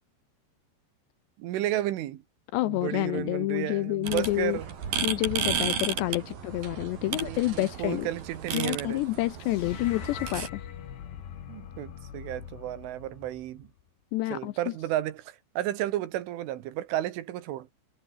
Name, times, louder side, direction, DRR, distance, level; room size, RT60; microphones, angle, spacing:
voice 1, 1.4-2.2 2.7-4.7 7.0-9.0 11.5-13.7 14.3-17.7, right 14 dB, 85° right, 4.1 m, -33 dB
voice 2, 2.5-4.6 5.0-8.1 8.5-10.6 14.1-14.5, left 18 dB, 80° left, 2.7 m, -28 dB
sound 1, 4.0-10.5, right 7 dB, 50° right, 5.2 m, -33 dB
sound 2, 9.4-13.8, left 9 dB, 65° left, 4.7 m, -42 dB
omnidirectional pair, 5.5 m